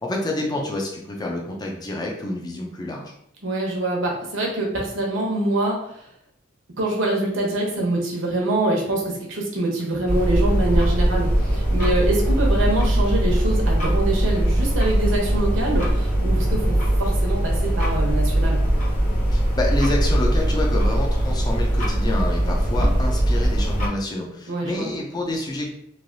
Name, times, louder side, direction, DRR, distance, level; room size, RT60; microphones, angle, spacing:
voice 1, 0.0-3.1 19.3-25.7, left 1 dB, 20° left, 0 dB, 0.4 m, -28 dB
voice 2, 3.4-5.8 6.8-18.6 24.5-24.9, right 1 dB, 70° right, -1 dB, 0.9 m, -25 dB
sound 1, 10.1-23.9, right 1 dB, 40° left, 0.9 m, -20 dB
3.2 x 2.6 x 2.5 m, 0.72 s
head